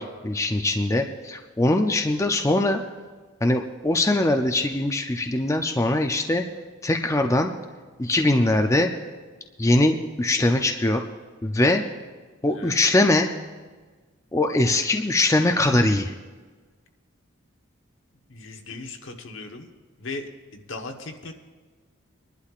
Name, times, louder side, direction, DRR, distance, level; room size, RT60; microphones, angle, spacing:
voice 1, 0.0-2.8 3.4-6.4 6.8-7.5 8.0-8.9 9.6-11.0 11.4-11.8 12.4-13.3 14.3-16.1, left 2 dB, 15° left, 4 dB, 0.5 m, -22 dB
voice 2, 18.3-19.7 20.0-21.3, left 3 dB, 65° left, 4 dB, 1.2 m, -37 dB
24.0 x 11.5 x 2.5 m, 1.4 s
head